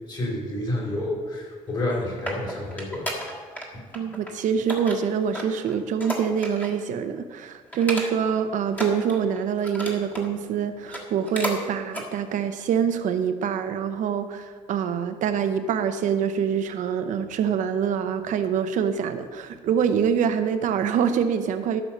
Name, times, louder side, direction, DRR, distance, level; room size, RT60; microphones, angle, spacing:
voice 1, 0.1-3.1 3.7-3.8, left 1 dB, 35° left, -2 dB, 2.9 m, -29 dB
sound 1, 1.7-3.7 3.9-4.3 4.7-6.8 7.2-7.3 7.7-8.4 8.7-10.3 10.8-11.6 11.9-12.1 12.6-12.7, equal, 15° left, 1.5 m, -33 dB
voice 2, 3.9-21.8, right 7 dB, 75° right, 9 dB, 0.8 m, -25 dB
13.0 x 6.4 x 5.5 m, 1.5 s
cardioid pair, 180°, 13 cm